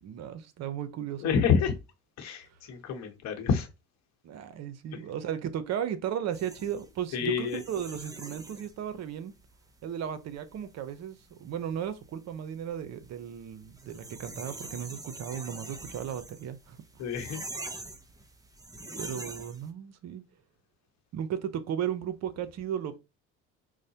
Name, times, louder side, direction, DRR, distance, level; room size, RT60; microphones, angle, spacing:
voice 1, 0.0-1.4 4.2-9.3 9.8-17.0 19.0-20.2 21.1-23.0, right 9 dB, 55° right, 0.7 m, -35 dB
voice 2, 1.2-1.7 2.2-3.7 4.9-5.0 7.1-7.6 17.0-17.4, left 6 dB, 60° left, 1.0 m, -28 dB
sound 1, 6.3-19.7, right 2 dB, 10° right, 0.6 m, -45 dB
4.7 x 2.1 x 2.8 m
supercardioid pair, 90°, 31 cm